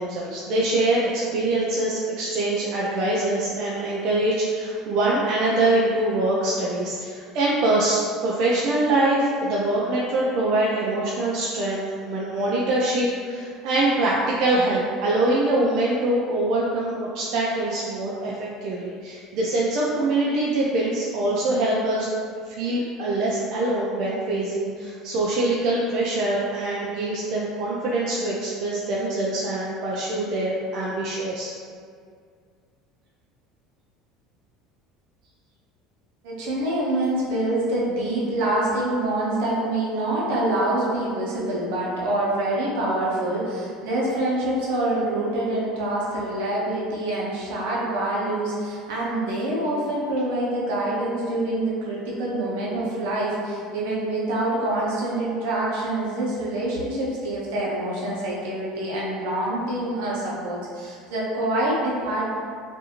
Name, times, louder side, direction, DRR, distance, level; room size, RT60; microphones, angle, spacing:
voice 1, 0.0-22.1 22.4-31.5, right 2 dB, 60° right, -5 dB, 0.4 m, -24 dB
voice 2, 36.2-62.3, right 1 dB, 80° right, -5 dB, 0.7 m, -26 dB
2.5 x 2.4 x 2.8 m, 2.1 s
supercardioid pair, 130°, 0 cm